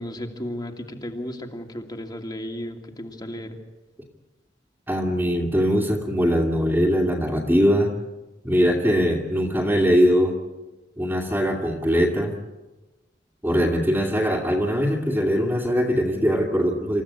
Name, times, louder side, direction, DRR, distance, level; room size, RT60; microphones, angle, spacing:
voice 1, 0.0-3.6, equal, 25° left, 3 dB, 2.6 m, -34 dB
voice 2, 4.9-7.9 8.4-10.4 11.0-12.4 13.4-17.0, equal, 10° right, -2 dB, 2.4 m, -21 dB
28.0 x 15.0 x 8.6 m, 1.1 s
head